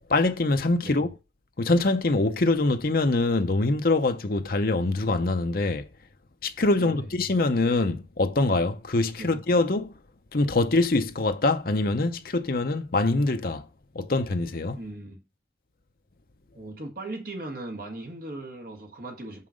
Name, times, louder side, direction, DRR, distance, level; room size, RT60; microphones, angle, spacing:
voice 1, 0.1-1.1 1.6-5.9 6.4-9.9 10.3-13.6 13.9-14.8, left 2 dB, 55° left, 0.8 m, -24 dB
voice 2, 6.8-7.1 9.2-9.4 14.7-15.2 16.5-19.5, right 2 dB, 55° right, 1.7 m, -38 dB
5.7 x 5.0 x 6.4 m
head